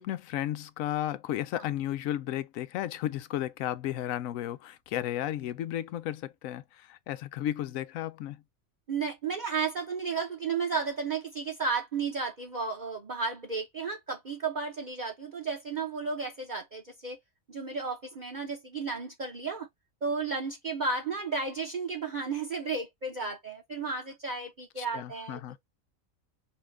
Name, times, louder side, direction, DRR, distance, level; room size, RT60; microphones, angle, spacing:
voice 1, 0.0-8.4 24.8-25.6, left 12 dB, 75° left, 1.0 m, -34 dB
voice 2, 8.9-17.2 17.5-19.7 20.0-25.4, right 4 dB, 35° right, 1.0 m, -33 dB
5.8 x 2.5 x 3.2 m
omnidirectional pair, 1.4 m